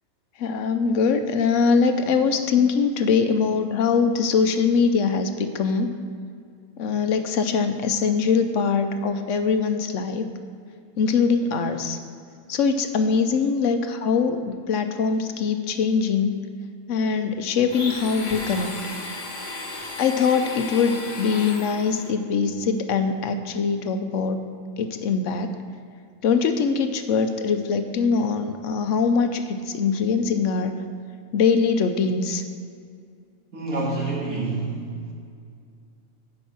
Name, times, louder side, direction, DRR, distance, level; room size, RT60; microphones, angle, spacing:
voice 1, 0.4-5.9 6.8-10.3 11.0-12.0 12.5-16.4 16.9-18.7 20.0-24.4 24.8-25.5 26.2-30.7 31.3-32.4, left 5 dB, 70° left, 8 dB, 0.9 m, -22 dB
Domestic sounds home sounds, 17.7-22.1, left 2 dB, 40° left, 1.2 m, -34 dB
voice 2, 33.5-34.8, right 3 dB, 70° right, -3 dB, 2.2 m, -27 dB
9.7 x 5.4 x 6.0 m, 2.3 s
omnidirectional pair, 1.4 m